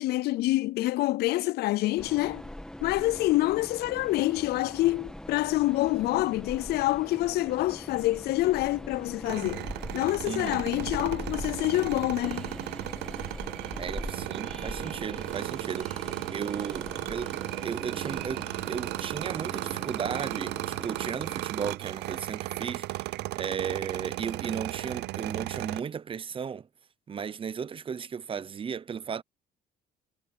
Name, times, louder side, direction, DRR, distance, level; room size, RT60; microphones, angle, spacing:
voice 1, 0.0-2.4 2.8-9.7 9.9-12.6, left 17 dB, 70° left, 0.4 m, -27 dB
Train, 2.0-21.4, left 1 dB, 5° left, 1.7 m, -42 dB
sound 1, 9.3-25.8, right 19 dB, 80° right, 0.6 m, -35 dB
voice 2, 10.2-10.6 13.8-26.7 27.1-29.2, right 7 dB, 30° right, 0.7 m, -35 dB
cardioid pair, 110°, 17 cm